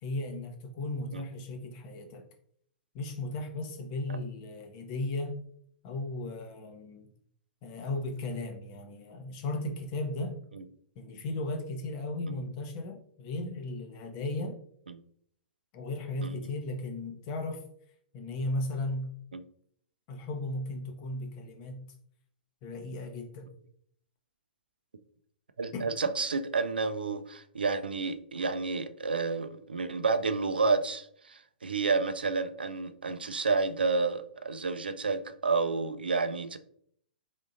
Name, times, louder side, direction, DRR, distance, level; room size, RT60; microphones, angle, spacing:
voice 1, 0.0-2.2 2.9-5.4 5.8-7.1 7.6-10.4 11.0-14.6 15.7-17.6 18.1-19.1 20.1-21.9 22.6-23.5 25.7-25.9, left 2 dB, 35° left, 0.7 m, -36 dB
voice 2, 25.6-36.6, right 4 dB, 75° right, 0.3 m, -30 dB
3.6 x 3.6 x 2.6 m
figure-of-eight pair, 110°, 5 cm